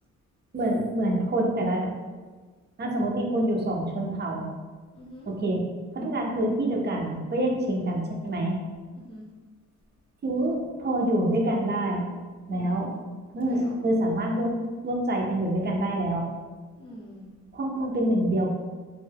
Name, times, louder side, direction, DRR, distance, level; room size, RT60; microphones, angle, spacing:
voice 1, 0.5-1.9 2.8-4.5 5.3-5.6 5.9-8.6 10.2-12.1 12.5-12.9 13.3-14.5 14.8-16.3 17.5-18.5, right 1 dB, 35° right, 0 dB, 0.6 m, -26 dB
voice 2, 4.9-5.3 7.6-8.0 8.9-9.3 12.5-12.9 13.4-13.7 16.8-17.2, left 1 dB, 15° left, -3 dB, 0.8 m, -44 dB
2.6 x 2.2 x 3.3 m, 1.4 s
cardioid pair, 90°, 30 cm